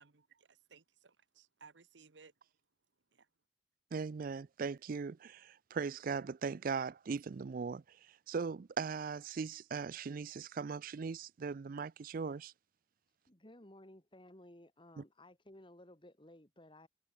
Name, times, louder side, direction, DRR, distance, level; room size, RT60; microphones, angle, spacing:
voice 1, 0.0-2.3 3.1-3.3, right 5 dB, 80° right, 1.1 m, -61 dB
voice 2, 3.9-8.0 8.3-12.5 15.0-15.1, right 5 dB, 50° right, 0.4 m, -39 dB
voice 3, 13.3-16.9, left 1 dB, 25° left, 2.6 m, -57 dB
head